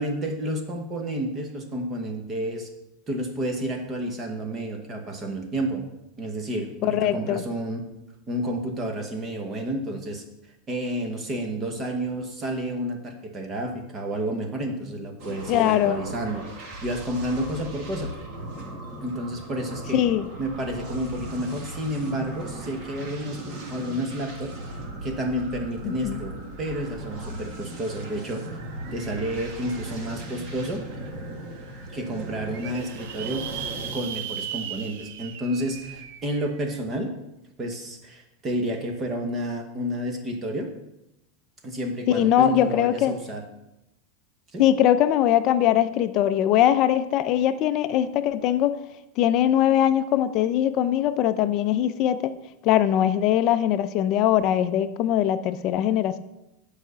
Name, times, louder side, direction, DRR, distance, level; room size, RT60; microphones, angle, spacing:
voice 1, 0.0-2.7 3.1-5.8 6.2-7.8 8.3-10.2 10.7-16.4 16.8-18.1 19.0-20.0 20.4-24.5 25.0-26.3 26.6-28.4 28.9-30.8 31.9-33.5 33.9-37.2 37.6-40.7 41.6-43.4 44.5-44.6, right 1 dB, 15° right, 4 dB, 1.0 m, -30 dB
voice 2, 6.8-7.4 15.5-16.0 19.9-20.3 25.8-26.2 42.1-43.1 44.6-48.7 49.2-52.3 52.6-56.2, left 11 dB, 30° left, 11 dB, 0.5 m, -21 dB
sound 1, 15.2-33.9, right 1 dB, 40° right, 1.5 m, -38 dB
sound 2, 27.7-27.8 28.1-30.2 30.8-30.9 31.3-31.4 31.5-31.6 32.2-36.8, right 9 dB, 65° right, 0.7 m, -38 dB
8.9 x 4.9 x 6.8 m, 0.90 s
supercardioid pair, 180°, 0 cm